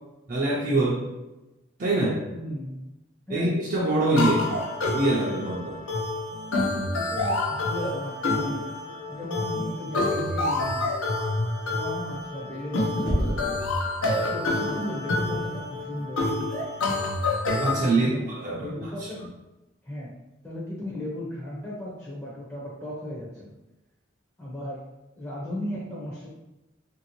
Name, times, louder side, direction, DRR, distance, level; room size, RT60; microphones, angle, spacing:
voice 1, 0.3-1.0 1.8-2.2 3.3-4.5 4.9-5.8 17.6-19.1, right 2 dB, 40° right, -5 dB, 0.4 m, -24 dB
voice 2, 2.3-2.8 3.3-3.6 6.9-8.7 9.1-10.9 11.7-13.6 14.1-16.3 16.8-17.1 17.9-18.3 18.6-19.2 19.8-20.1 20.4-23.5 24.4-24.9 25.2-26.3, left 1 dB, 10° left, -6 dB, 0.5 m, -36 dB
sound 1, 4.2-17.9, left 2 dB, 90° left, 0.6 m, -28 dB
Knock, 13.1-13.7, equal, 70° left, 1.1 m, -26 dB
2.9 x 2.6 x 2.9 m, 1.0 s
head